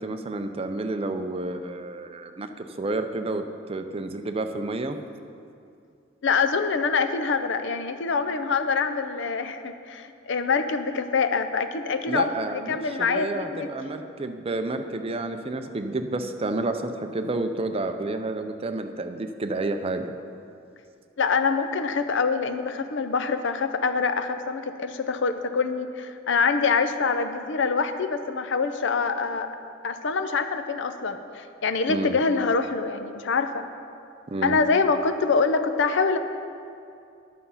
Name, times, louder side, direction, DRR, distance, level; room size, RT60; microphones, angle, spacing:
voice 1, 0.0-5.0 12.1-20.1 31.9-32.2 34.3-34.6, right 2 dB, 30° right, 7 dB, 0.5 m, -30 dB
voice 2, 6.2-13.7 21.2-29.5 29.8-33.7 34.4-36.2, left 4 dB, 65° left, 9 dB, 0.6 m, -25 dB
10.0 x 6.9 x 5.6 m, 2.5 s
head